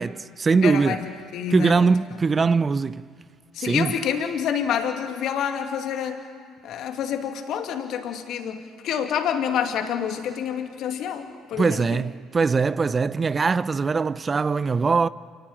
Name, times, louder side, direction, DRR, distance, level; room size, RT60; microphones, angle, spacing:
voice 1, 0.0-1.0 1.5-3.0 3.6-4.0 11.6-15.1, right 4 dB, 30° right, 0.6 m, -21 dB
voice 2, 0.6-1.9 3.6-6.2 6.6-8.6 8.8-11.8, left 8 dB, 55° left, 2.5 m, -27 dB
28.0 x 18.0 x 9.0 m
figure-of-eight pair, 55°, 0 cm